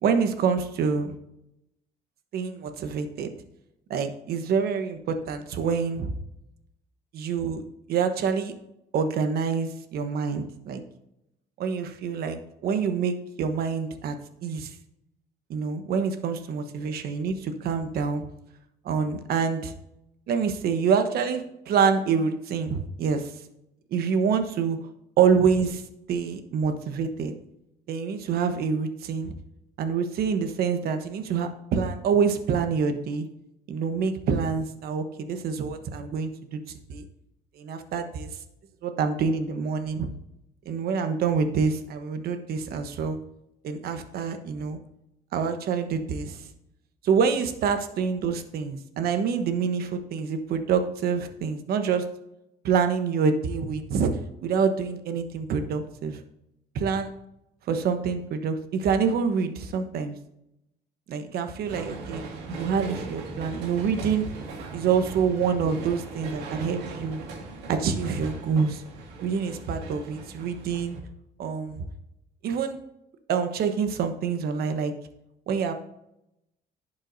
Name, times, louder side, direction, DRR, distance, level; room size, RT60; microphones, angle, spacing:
voice 1, 0.0-1.1 2.3-3.3 3.9-6.1 7.1-7.6 7.9-8.5 8.9-10.8 11.6-14.2 14.4-14.7 15.5-18.3 18.8-19.7 20.3-23.3 23.9-24.8 25.2-25.8 26.1-27.3 27.9-29.3 29.8-33.3 33.7-37.0 37.6-38.3 38.8-40.1 40.6-43.2 43.6-44.8 45.3-46.5 47.0-52.0 52.6-54.1 54.4-56.2 56.7-57.1 57.7-60.2 61.1-62.2 62.6-64.3 64.7-67.2 67.7-68.8 69.2-71.0 71.4-71.9 72.4-72.8 73.3-74.9 75.5-75.7, right 6 dB, 65° right, 8 dB, 1.1 m, -26 dB
sound 1, 61.7-71.0, right 3 dB, 80° right, 2.1 m, -39 dB
11.0 x 7.4 x 2.7 m, 0.84 s
cardioid pair, 110°, 17 cm